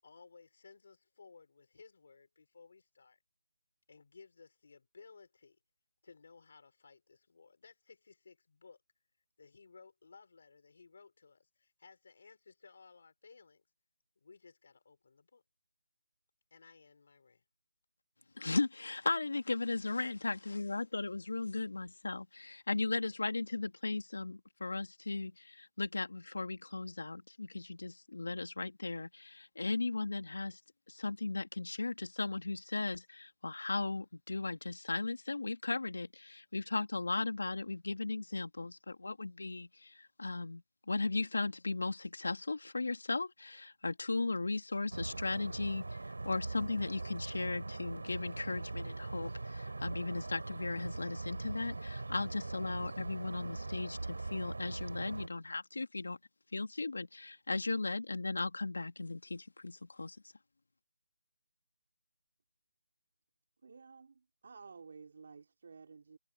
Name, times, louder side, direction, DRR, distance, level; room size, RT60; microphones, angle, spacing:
voice 1, 0.0-3.2 3.9-5.6 6.0-8.8 9.4-13.6 14.2-15.4 16.5-17.4, left 4 dB, 50° left, 6.1 m, -59 dB
voice 2, 18.4-30.6 30.9-45.8 46.2-56.2 56.5-60.2, left 3 dB, 75° left, 2.7 m, -37 dB
sound 1, 44.9-55.3, right 2 dB, 90° right, 4.4 m, -41 dB
voice 3, 63.6-66.2, right 5 dB, 45° right, 3.9 m, -53 dB
figure-of-eight pair, 175°, 0 cm